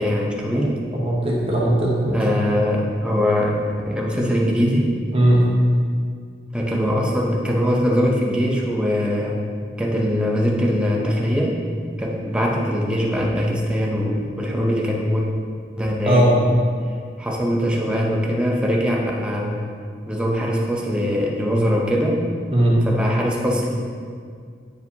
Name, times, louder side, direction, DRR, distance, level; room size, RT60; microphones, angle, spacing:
voice 1, 0.0-0.8 2.1-3.5 3.8-4.9 6.5-9.4 9.8-11.5 12.0-15.3 15.8-16.6 17.2-19.6 20.1-22.2 22.8-23.7, equal, 5° right, -2 dB, 0.6 m, -22 dB
voice 2, 0.9-2.2 5.1-5.5 16.1-16.3 22.5-22.8, right 1 dB, 30° right, -4 dB, 1.0 m, -18 dB
9.2 x 4.7 x 2.8 m, 2.1 s
head